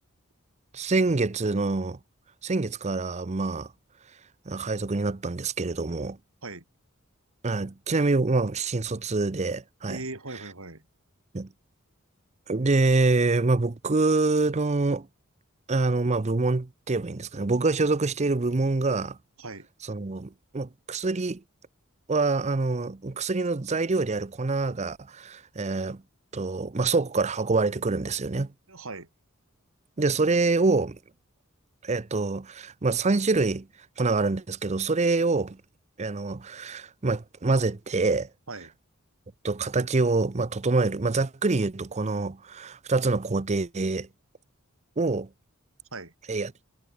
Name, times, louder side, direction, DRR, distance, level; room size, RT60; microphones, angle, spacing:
voice 1, 0.7-2.0 2.4-3.7 4.5-6.2 7.4-10.0 11.3-11.5 12.5-15.1 15.7-19.2 19.9-21.4 22.1-26.0 26.3-28.5 30.0-31.0 31.8-33.7 34.0-35.6 36.0-38.3 39.4-44.1 45.0-45.3 46.3-46.5, right 3 dB, 30° right, 0.6 m, -26 dB
voice 2, 9.9-10.8 19.4-19.7 28.7-29.1 38.5-38.8 45.9-46.1, right 2 dB, 75° right, 4.6 m, -39 dB
head